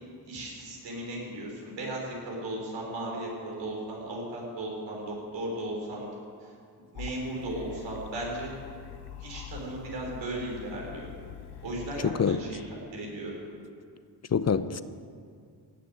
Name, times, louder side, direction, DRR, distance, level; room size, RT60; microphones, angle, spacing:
voice 1, 0.2-6.1 6.4-6.5 6.9-8.5 9.2-11.1 11.6-13.3, right 1 dB, 90° right, -2 dB, 4.6 m, -36 dB
sound 1, 6.9-12.0, left 10 dB, 65° left, 1.0 m, -44 dB
voice 2, 12.0-12.4 14.3-14.8, left 6 dB, 40° left, 13 dB, 0.7 m, -25 dB
17.0 x 6.9 x 9.5 m, 2.2 s
cardioid pair, 65°, 42 cm